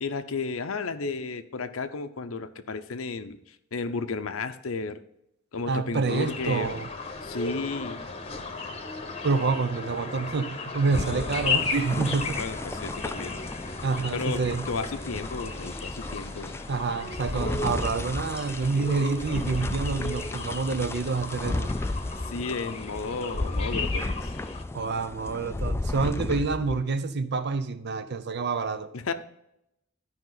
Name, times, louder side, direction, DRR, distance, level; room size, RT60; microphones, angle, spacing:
voice 1, 0.0-5.0 5.5-6.7 7.2-8.0 12.4-13.4 14.1-16.6 22.3-24.3 28.9-29.1, left 4 dB, 85° left, 10 dB, 0.7 m, -33 dB
voice 2, 5.7-6.9 9.2-12.4 13.8-14.6 16.7-21.7 24.7-28.9, right 4 dB, 55° right, 12 dB, 0.6 m, -28 dB
sound 1, 6.1-24.6, left 4 dB, 30° left, 0.9 m, -36 dB
sound 2, 10.9-26.8, left 2 dB, 10° left, 0.3 m, -34 dB
12.5 x 5.3 x 4.0 m, 0.82 s
head